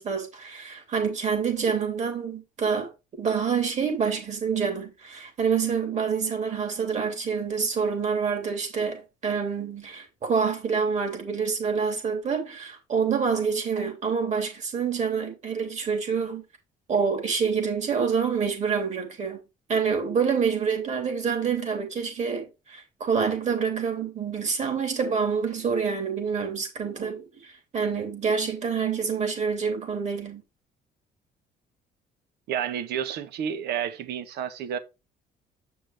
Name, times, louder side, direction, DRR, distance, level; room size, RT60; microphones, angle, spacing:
voice 1, 0.0-2.9 3.2-16.4 16.9-19.4 19.7-30.4, right 6 dB, 45° right, 3.6 m, -27 dB
voice 2, 32.5-34.8, right 9 dB, 75° right, 1.2 m, -30 dB
8.0 x 6.2 x 3.5 m
cardioid pair, 110°, 17 cm